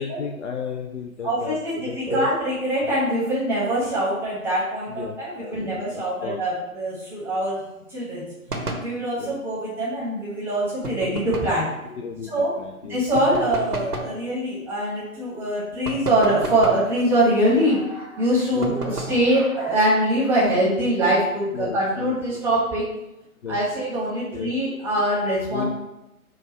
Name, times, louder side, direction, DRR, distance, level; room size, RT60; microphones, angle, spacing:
voice 1, 0.0-2.3 4.9-6.4 9.2-9.4 12.0-13.0 18.5-18.7 21.5-22.4 23.4-23.6 24.3-24.5 25.5-25.7, left 7 dB, 55° left, 2 dB, 0.5 m, -34 dB
voice 2, 1.2-7.6 7.9-8.3 8.8-11.7 12.3-12.5 12.9-22.8 23.5-25.7, right 1 dB, 5° right, -8 dB, 0.9 m, -23 dB
sound 1, 8.5-8.9 10.8-11.6 13.1-14.2 15.8-16.9 18.6-19.2, right 2 dB, 90° right, 0.9 m, -31 dB
4.5 x 2.3 x 4.4 m, 0.93 s
figure-of-eight pair, 125°, 44 cm